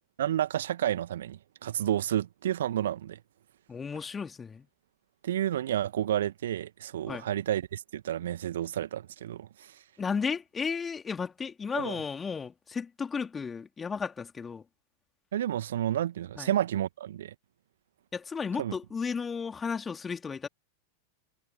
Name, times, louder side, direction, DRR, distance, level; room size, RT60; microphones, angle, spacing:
voice 1, 0.2-3.2 5.2-9.7 11.8-12.0 15.3-17.3 18.6-18.7, right 11 dB, 60° right, 1.9 m, -30 dB
voice 2, 3.7-4.7 7.1-7.3 10.0-14.6 16.4-16.5 18.1-20.5, left 5 dB, 15° left, 3.5 m, -34 dB
figure-of-eight pair, 90°, 0 cm